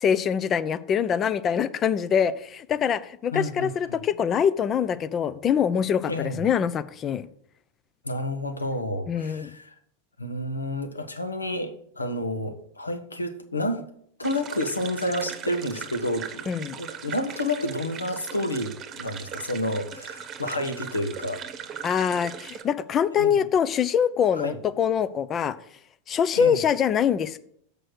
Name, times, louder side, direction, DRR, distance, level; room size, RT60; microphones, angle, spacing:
voice 1, 0.0-7.3 9.1-9.6 16.5-16.8 21.8-25.6 26.1-27.4, left 8 dB, 30° left, 16 dB, 0.5 m, -24 dB
voice 2, 3.3-4.0 6.0-6.5 8.0-9.8 10.2-13.8 14.2-16.4 16.8-21.4 23.2-23.3 24.3-24.6 26.4-26.6, left 1 dB, 80° left, 8 dB, 1.0 m, -30 dB
sound 1, 14.2-22.6, right 8 dB, 30° right, 1.0 m, -39 dB
7.6 x 5.2 x 6.3 m, 0.66 s
figure-of-eight pair, 90°, 0 cm